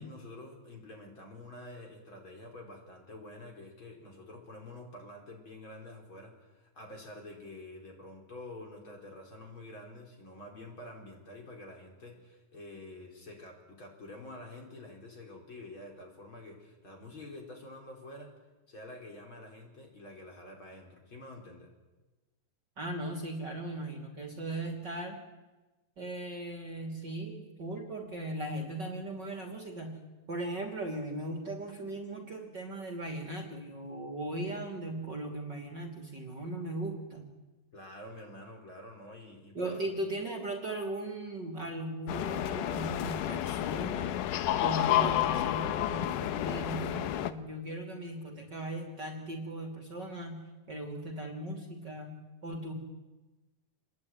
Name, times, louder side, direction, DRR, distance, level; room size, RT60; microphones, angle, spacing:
voice 1, 0.0-18.3 18.7-21.7 37.7-39.8, left 1 dB, 35° left, 1 dB, 5.1 m, -48 dB
voice 2, 22.8-25.2 26.0-30.0 30.3-37.2 39.5-44.3 44.6-50.4 50.7-52.7, right 1 dB, 35° right, 3 dB, 3.1 m, -38 dB
sound 1, 42.1-47.3, left 12 dB, 75° left, 2.5 m, -30 dB
27.5 x 21.5 x 9.5 m, 1.2 s
omnidirectional pair, 3.8 m